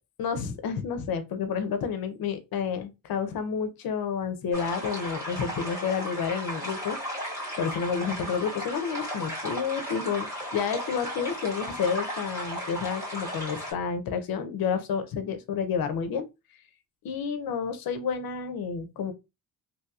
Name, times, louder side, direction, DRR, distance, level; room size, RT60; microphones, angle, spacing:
voice 1, 0.2-7.0 7.6-16.3 17.0-19.1, left 6 dB, 70° left, 0.6 m, -30 dB
sound 1, 4.5-13.7, equal, 10° right, 1.7 m, -35 dB
3.0 x 2.7 x 2.3 m
cardioid pair, 115°, 37 cm